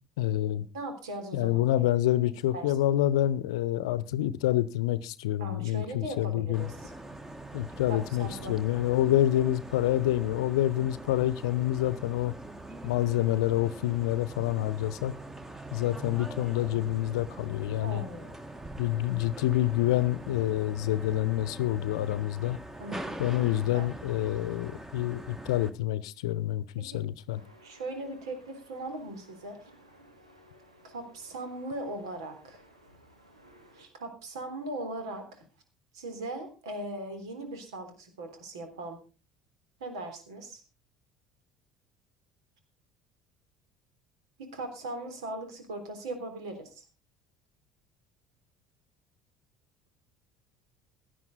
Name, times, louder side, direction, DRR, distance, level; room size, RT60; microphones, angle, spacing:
voice 1, 0.2-0.7 1.3-6.7 7.5-12.4 12.8-15.1 15.7-18.0 18.8-22.6 23.2-27.4, left 14 dB, 65° left, 0.8 m, -27 dB
voice 2, 0.7-1.9 2.5-2.7 5.4-6.9 7.9-8.6 17.8-18.4 22.8-23.2 23.7-23.9 26.9-27.0 27.6-29.6 30.8-32.6 33.7-35.5 35.9-39.0 39.8-40.6 44.4-46.8, right 1 dB, 70° right, 3.5 m, -39 dB
sound 1, 6.5-25.7, right 2 dB, 15° right, 1.7 m, -43 dB
sound 2, 27.3-33.9, equal, 85° right, 2.3 m, -58 dB
16.5 x 11.0 x 3.9 m
figure-of-eight pair, 60°, 3 cm